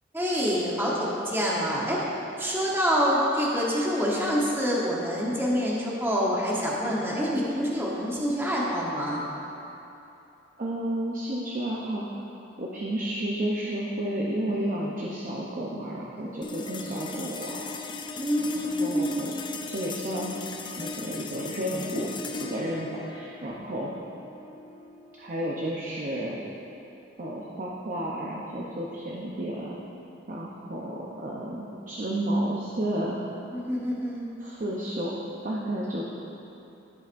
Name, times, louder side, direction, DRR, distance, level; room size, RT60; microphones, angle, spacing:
voice 1, 0.1-2.0 2.4-9.2 16.2-16.4 18.2-19.3 33.5-34.3, equal, 10° right, -5 dB, 1.0 m, -26 dB
voice 2, 10.6-12.3 12.6-17.8 18.4-19.4 19.7-20.3 20.8-23.9 25.2-26.4 27.2-29.7 30.3-33.3 34.4-35.1 35.4-36.0, right 1 dB, 45° right, -3 dB, 0.7 m, -32 dB
sound 1, 16.4-27.0, left 4 dB, 25° left, 0.4 m, -39 dB
15.0 x 5.7 x 2.6 m, 2.9 s
head